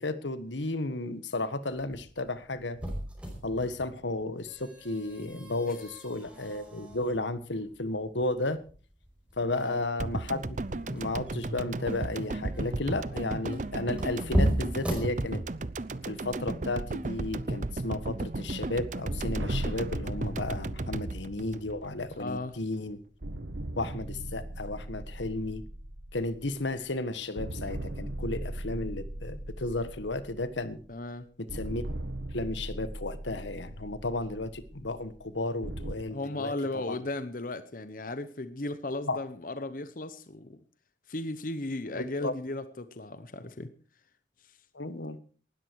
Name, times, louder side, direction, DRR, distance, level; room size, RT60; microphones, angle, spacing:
voice 1, 0.0-2.8 3.4-8.6 9.4-15.4 16.1-23.0 23.8-25.6 26.1-30.8 31.5-31.8 32.3-36.5 36.9-37.0 39.1-39.2 42.0-42.3 44.7-45.2, left 2 dB, 80° left, 13 dB, 1.5 m, -33 dB
sound 1, 1.7-15.8, equal, 5° right, 5.2 m, -36 dB
voice 2, 9.5-9.8 22.2-22.5 30.9-31.3 36.1-40.6 41.1-43.7 44.4-44.5, left 2 dB, 45° left, 11 dB, 0.9 m, -36 dB
sound 2, 10.0-22.3 22.6-22.7, right 2 dB, 40° right, 0.7 m, -35 dB
sound 3, 19.1-22.6 23.2-27.0 27.4-31.0 31.5-35.9, right 1 dB, 85° right, 1.6 m, -39 dB
19.0 x 13.5 x 4.7 m, 0.40 s
head